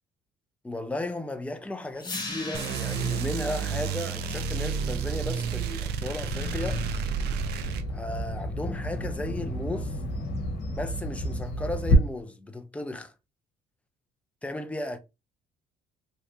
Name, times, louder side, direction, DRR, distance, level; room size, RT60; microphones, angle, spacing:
voice 1, 0.6-6.9 7.9-10.0 10.7-13.1 14.4-15.0, left 2 dB, 10° left, 0.5 m, -35 dB
sound 1, 2.0-8.0, left 2 dB, 25° left, 1.3 m, -41 dB
sound 2, 2.5-7.8, right 6 dB, 75° right, 0.5 m, -30 dB
Bird vocalization bird call bird song, 6.2-11.9, left 1 dB, 70° left, 1.1 m, -31 dB
3.3 x 2.5 x 2.8 m
cardioid pair, 110°, 17 cm